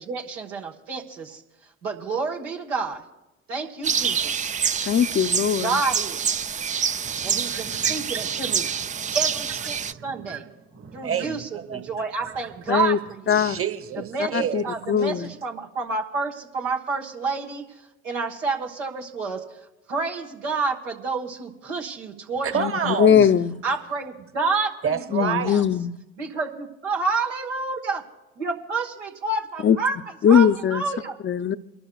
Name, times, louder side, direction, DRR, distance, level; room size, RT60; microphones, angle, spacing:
voice 1, 0.0-1.4 1.8-3.0 3.5-4.5 5.6-6.6 7.2-8.6 9.1-9.8 10.0-10.4 10.9-13.4 14.1-14.3 14.6-17.6 18.0-19.4 19.9-22.9 23.6-25.6 26.2-28.0 28.4-30.0 30.3-31.1, right 4 dB, 85° right, 1.4 m, -29 dB
sound 1, 3.8-9.9, right 7 dB, 20° right, 0.4 m, -26 dB
voice 2, 4.8-5.8 12.7-13.0 13.3-13.6 14.3-15.3 22.6-23.6 25.1-25.9 29.6-29.8 30.2-30.8 31.2-31.6, left 8 dB, 35° left, 0.6 m, -20 dB
voice 3, 7.0-9.2 9.5-11.8 12.2-12.5 13.3-14.6 22.4-23.3 24.8-25.5, right 7 dB, 40° right, 1.4 m, -30 dB
29.0 x 12.0 x 2.3 m
hypercardioid pair, 50°, 36 cm